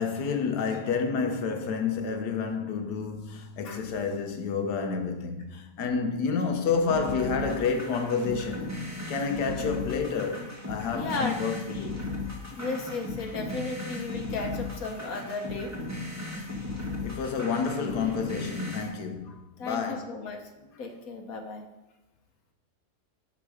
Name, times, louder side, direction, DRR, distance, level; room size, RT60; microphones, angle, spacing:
voice 1, 0.0-12.1 17.0-20.3, left 5 dB, 80° left, 1.5 m, -30 dB
sound 1, 6.9-18.9, left 2 dB, 10° right, 1.3 m, -36 dB
voice 2, 10.9-11.4 12.5-15.8 19.3-21.7, left 3 dB, 60° left, 1.3 m, -35 dB
11.0 x 4.7 x 4.9 m
omnidirectional pair, 1.7 m